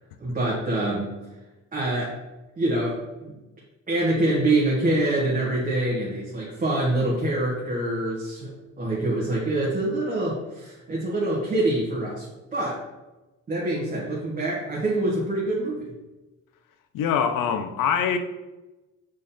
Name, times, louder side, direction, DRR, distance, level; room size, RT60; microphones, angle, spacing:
voice 1, 0.2-1.2 1.7-2.1 2.6-3.3 3.9-12.2 12.5-12.8 13.5-15.9, right 2 dB, 25° right, 1.5 m, -25 dB
voice 2, 16.9-18.2, left 7 dB, 80° left, 0.7 m, -23 dB
6.3 x 3.8 x 4.2 m
cardioid pair, 120°, 32 cm